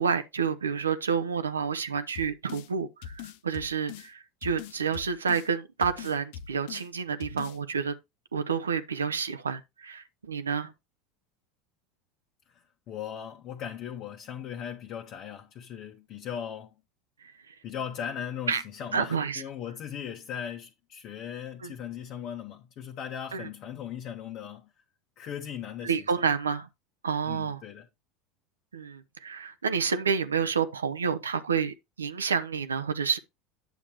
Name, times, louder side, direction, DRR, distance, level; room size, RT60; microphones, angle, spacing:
voice 1, 0.0-7.9 8.3-10.7 17.5-17.6 18.5-18.6 18.9-19.4 21.6-21.7 23.3-23.5 25.8-26.7 27.0-27.6 28.7-33.2, right 6 dB, 85° right, 0.6 m, -29 dB
sound 1, 2.1-2.7 3.0-4.1 4.4-5.5 5.8-6.9 7.2-7.6, left 9 dB, 65° left, 0.6 m, -41 dB
voice 2, 12.5-16.7 17.6-24.7 25.2-26.1 27.3-27.9, left 9 dB, 50° left, 1.1 m, -38 dB
9.2 x 7.0 x 3.0 m
hypercardioid pair, 80°, 0 cm